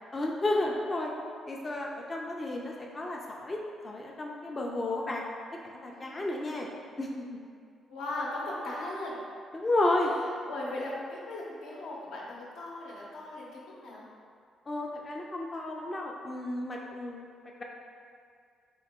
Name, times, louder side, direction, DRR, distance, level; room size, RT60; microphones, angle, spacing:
voice 1, 0.1-1.1 1.5-3.6 3.8-5.2 5.6-6.7 7.0-7.4 9.5-10.1 14.7-17.2, left 2 dB, 30° left, -1 dB, 0.4 m, -32 dB
voice 2, 7.9-9.2 10.5-14.0, left 2 dB, 80° left, -5 dB, 0.8 m, -38 dB
3.7 x 2.7 x 3.5 m, 2.2 s
cardioid pair, 90°, 0 cm